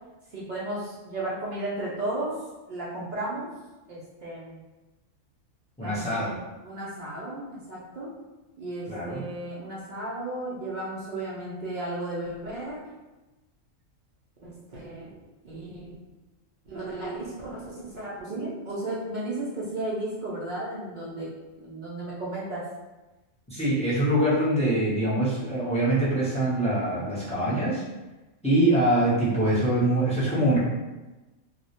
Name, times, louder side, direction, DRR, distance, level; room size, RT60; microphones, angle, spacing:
voice 1, 0.3-2.4 2.7-3.5 3.9-4.6 5.8-6.1 6.6-8.2 8.6-12.9 14.4-15.2 15.4-16.0 16.6-21.3 21.6-22.7, right 2 dB, 70° right, -7 dB, 0.4 m, -34 dB
voice 2, 5.8-6.4 8.9-9.2 23.5-27.8 28.4-30.6, right 1 dB, 10° left, -9 dB, 0.3 m, -24 dB
2.3 x 2.0 x 2.7 m, 1.1 s
omnidirectional pair, 1.3 m